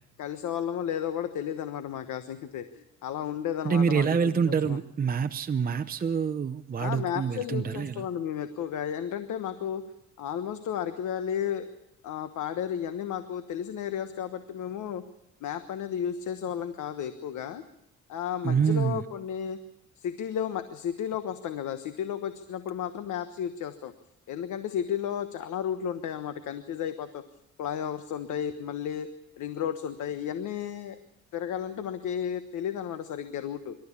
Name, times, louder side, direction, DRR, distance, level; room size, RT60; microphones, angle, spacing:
voice 1, 0.2-4.2 4.4-4.8 6.8-9.8 10.2-11.6 12.0-15.0 15.4-17.6 18.1-19.6 20.0-23.9 24.3-27.2 27.6-29.1 29.4-31.0 31.3-33.8, left 9 dB, 80° left, 10 dB, 1.3 m, -33 dB
voice 2, 3.6-8.0 18.4-19.0, right 6 dB, 30° right, 8 dB, 0.8 m, -26 dB
26.5 x 13.0 x 8.5 m, 0.84 s
cardioid pair, 90°, 30 cm